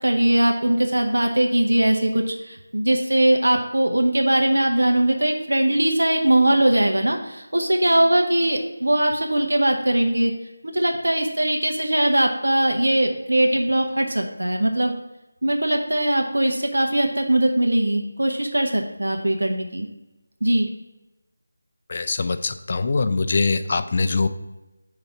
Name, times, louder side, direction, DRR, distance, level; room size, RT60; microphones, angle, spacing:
voice 1, 0.0-10.3 10.6-14.9 15.4-19.9 20.4-20.7, right 1 dB, 85° right, 2 dB, 0.8 m, -20 dB
voice 2, 21.9-24.3, left 3 dB, 40° left, 9 dB, 0.4 m, -23 dB
4.9 x 4.0 x 5.5 m, 1.0 s
figure-of-eight pair, 165°, 0 cm